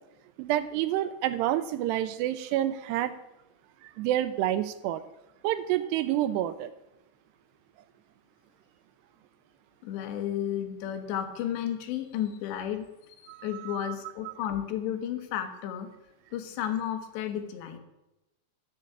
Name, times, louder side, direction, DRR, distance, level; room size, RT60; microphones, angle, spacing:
voice 1, 0.4-3.2 3.8-5.0 5.4-6.7 13.3-13.9 14.3-14.4, right 13 dB, 80° right, 12 dB, 2.6 m, -29 dB
voice 2, 9.8-15.9 16.3-17.8, left 10 dB, 85° left, 7 dB, 3.3 m, -33 dB
13.0 x 5.6 x 8.5 m, 0.94 s
omnidirectional pair, 5.0 m